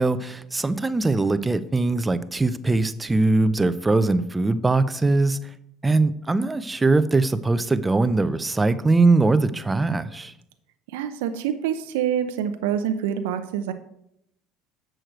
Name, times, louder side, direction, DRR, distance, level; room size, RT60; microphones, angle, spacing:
voice 1, 0.0-5.5 5.8-10.3, right 3 dB, 15° right, 13 dB, 0.6 m, -21 dB
voice 2, 10.9-13.7, right 9 dB, 85° right, 9 dB, 0.6 m, -26 dB
7.6 x 6.4 x 4.6 m, 0.76 s
supercardioid pair, 95°, 0 cm